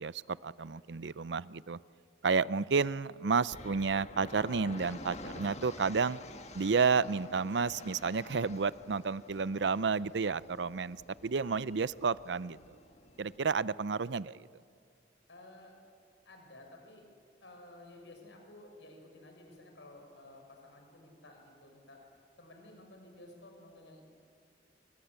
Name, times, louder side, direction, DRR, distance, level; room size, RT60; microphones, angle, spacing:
voice 1, 0.0-1.8 2.2-6.2 6.5-12.8 13.2-14.5, right 5 dB, 75° right, 18 dB, 0.6 m, -31 dB
sound 1, 3.5-13.4, left 2 dB, 40° left, 1.7 m, -49 dB
voice 2, 15.3-15.7 16.2-17.0 17.4-22.0 22.4-24.0, left 1 dB, 90° left, 2 dB, 6.6 m, -54 dB
28.0 x 25.0 x 8.3 m, 2.4 s
head